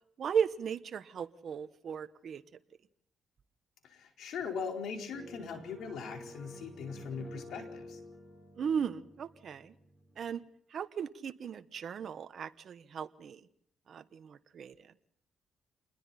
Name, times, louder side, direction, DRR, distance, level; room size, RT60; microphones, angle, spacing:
voice 1, 0.2-2.4 6.9-7.4 8.6-9.7 10.2-10.4 10.7-13.4 13.9-14.7, right 7 dB, 55° right, 10 dB, 1.2 m, -36 dB
voice 2, 3.9-8.0, left 5 dB, 75° left, 2 dB, 4.6 m, -40 dB
sound 1, 5.1-10.4, left 1 dB, 15° left, 5.5 m, -50 dB
28.5 x 21.0 x 4.3 m, 0.68 s
cardioid pair, 90°, 0 cm